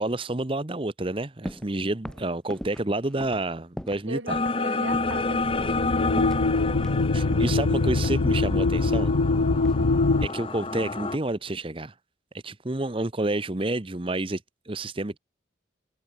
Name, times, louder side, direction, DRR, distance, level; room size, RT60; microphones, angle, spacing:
voice 1, 0.0-4.4 7.1-9.1 10.2-11.9 12.4-15.2, right 2 dB, 25° right, 0.9 m, -29 dB
sound 1, 1.4-1.7 2.0-4.1 4.3-4.6 4.9-5.3 5.6-5.9 6.2-7.0 7.3-8.7 9.6-10.5 10.8-11.3, equal, 5° left, 7.5 m, -40 dB
voice 2, 4.1-7.1 9.8-10.1, right 2 dB, 70° right, 7.2 m, -40 dB
sound 2, 4.3-11.2, left 3 dB, 25° left, 0.8 m, -30 dB
sound 3, 4.9-10.3, left 3 dB, 90° left, 0.8 m, -24 dB
head